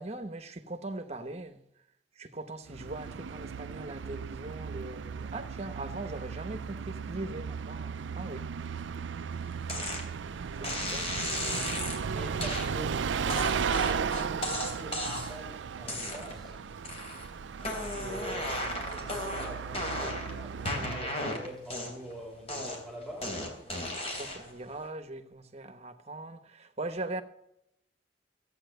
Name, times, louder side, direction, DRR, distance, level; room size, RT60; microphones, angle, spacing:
voice 1, 0.0-1.6 2.2-8.5 10.6-11.1 24.2-27.2, right 2 dB, 35° right, 1.2 m, -40 dB
Bus, 2.7-21.2, right 6 dB, 85° right, 0.5 m, -36 dB
sound 1, 9.7-10.0 10.6-12.0 12.4-12.7 13.3-15.4 15.8-16.5 16.8-17.3 17.6-20.3 20.7-22.1 22.5-24.5, left 1 dB, 35° left, 3.1 m, -35 dB
voice 2, 10.6-13.0 13.4-16.6 17.7-23.7, equal, ahead, 3.2 m, -45 dB
14.5 x 8.8 x 6.7 m
head